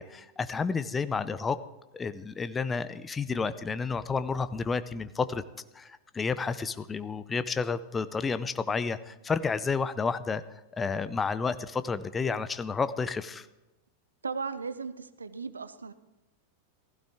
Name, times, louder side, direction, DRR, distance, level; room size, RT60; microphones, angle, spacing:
voice 1, 0.0-1.6 1.9-5.4 5.7-10.4 10.7-13.5, left 5 dB, 15° left, 14 dB, 0.7 m, -31 dB
voice 2, 14.2-15.9, right 5 dB, 75° right, 14 dB, 0.7 m, -36 dB
16.0 x 15.5 x 3.7 m, 1.0 s
figure-of-eight pair, 90°, 0 cm